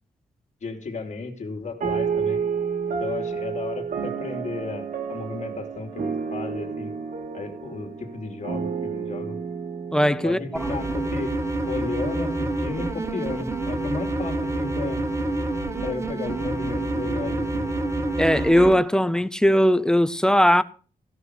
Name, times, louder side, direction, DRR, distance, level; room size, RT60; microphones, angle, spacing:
voice 1, 0.6-2.4 3.0-7.0 7.3-9.4 10.2-11.3 11.7-15.0 15.8-17.7, left 4 dB, 50° left, 2.8 m, -34 dB
sound 1, 1.8-11.6, right 6 dB, 65° right, 2.0 m, -31 dB
voice 2, 9.9-10.7 18.2-20.6, equal, 5° left, 0.6 m, -19 dB
sound 2, 10.5-18.7, right 2 dB, 20° right, 1.7 m, -27 dB
16.5 x 6.1 x 7.9 m
wide cardioid pair, 150°, 15 cm